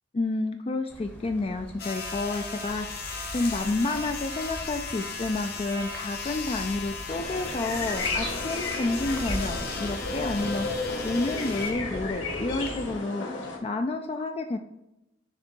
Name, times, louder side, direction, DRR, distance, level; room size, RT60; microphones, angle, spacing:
voice 1, 0.1-3.0 3.3-14.6, left 2 dB, 30° left, 5 dB, 0.3 m, -30 dB
sound 1, 0.9-13.0, equal, 10° left, 0.8 m, -41 dB
sound 2, 1.8-11.7, left 5 dB, 55° left, 1.0 m, -36 dB
sound 3, 7.1-13.6, left 3 dB, 80° left, 1.5 m, -33 dB
6.6 x 3.4 x 4.5 m, 0.88 s
head